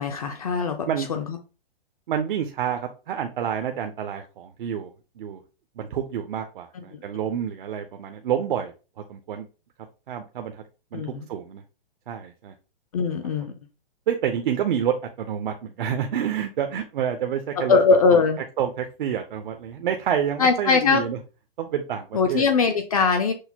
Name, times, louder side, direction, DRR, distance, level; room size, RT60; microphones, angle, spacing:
voice 1, 0.0-1.4 6.7-7.0 10.9-11.3 12.9-13.5 17.6-18.4 20.4-21.0 22.1-23.3, left 5 dB, 40° left, 5 dB, 0.4 m, -21 dB
voice 2, 2.1-4.9 5.2-5.4 5.8-8.7 9.1-9.5 10.1-10.6 10.9-11.6 12.1-12.5 14.1-17.8 18.1-18.2 18.6-21.2 21.6-22.4, right 9 dB, 60° right, 5 dB, 0.5 m, -28 dB
6.2 x 2.1 x 2.8 m, 0.32 s
hypercardioid pair, 170°, 29 cm